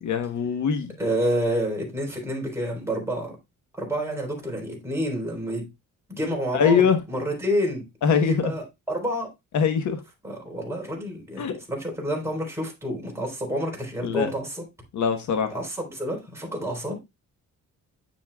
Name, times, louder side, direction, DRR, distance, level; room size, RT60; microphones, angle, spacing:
voice 1, 0.0-0.9 6.5-7.0 8.0-8.5 9.5-10.0 11.4-11.6 14.0-14.3 14.9-15.5, left 6 dB, 75° left, 1.2 m, -22 dB
voice 2, 1.0-3.4 3.8-5.7 6.1-7.9 8.2-9.3 10.2-14.6 15.5-17.0, equal, 10° right, 3.9 m, -29 dB
9.2 x 7.2 x 2.3 m
cardioid pair, 130°, 30 cm